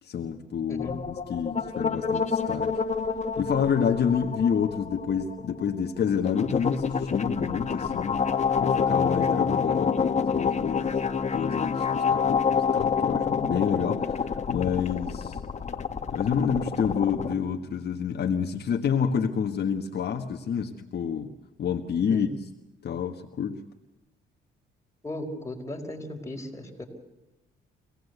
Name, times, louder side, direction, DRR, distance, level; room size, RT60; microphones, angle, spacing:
voice 1, 0.0-2.7 3.4-8.3 8.6-11.0 11.3-15.4 16.1-21.3 21.6-22.5 22.8-23.6, left 7 dB, 55° left, 3 dB, 1.5 m, -28 dB
voice 2, 0.7-1.0 22.1-22.3 25.0-26.9, left 1 dB, 15° left, 1 dB, 5.0 m, -36 dB
sound 1, 0.8-17.3, left 6 dB, 35° left, 1.7 m, -28 dB
25.0 x 18.0 x 8.1 m, 0.98 s
cardioid pair, 90°, 20 cm